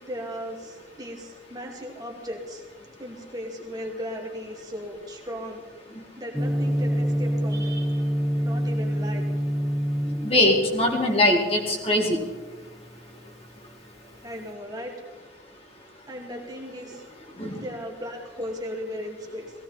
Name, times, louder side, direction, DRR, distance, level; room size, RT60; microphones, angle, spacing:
voice 1, 0.0-2.6 3.0-5.6 6.2-8.0 8.4-9.2 14.2-14.9 16.1-17.0 17.5-19.5, equal, 20° right, 0 dB, 2.4 m, -36 dB
Gong, 6.3-14.4, equal, ahead, 1.1 m, -28 dB
voice 2, 10.2-12.2 17.4-17.5, left 1 dB, 30° left, 0 dB, 2.3 m, -21 dB
18.0 x 16.5 x 4.3 m, 1.3 s
head